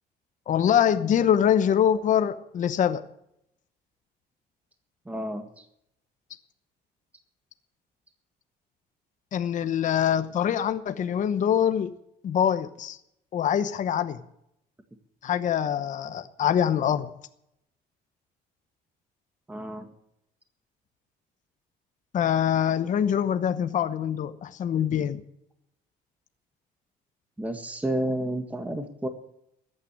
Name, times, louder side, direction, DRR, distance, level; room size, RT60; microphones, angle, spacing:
voice 1, 0.5-3.0 9.3-11.9 12.2-13.0 13.3-14.2 15.2-17.1 22.1-25.2, left 9 dB, 50° left, 0.9 m, -24 dB
voice 2, 5.0-5.6 19.5-19.9 27.4-29.1, right 1 dB, 10° right, 1.6 m, -31 dB
14.0 x 9.1 x 9.6 m
cardioid pair, 110°, 17 cm